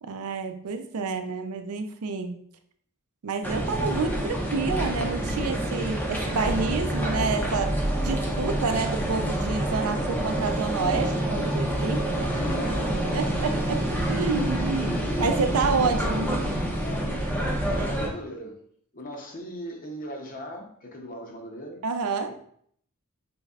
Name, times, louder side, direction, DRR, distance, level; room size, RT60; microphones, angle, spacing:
voice 1, 0.0-2.4 3.2-7.7 8.0-12.3 13.1-13.8 14.1-16.6 21.8-22.3, right 4 dB, 85° right, 0.5 m, -29 dB
sound 1, 3.4-18.1, right 1 dB, 10° left, 0.6 m, -27 dB
voice 2, 12.2-13.3 16.0-16.5 17.6-18.6 18.9-21.8 22.3-22.4, equal, 40° left, 0.7 m, -39 dB
5.1 x 3.3 x 2.4 m
head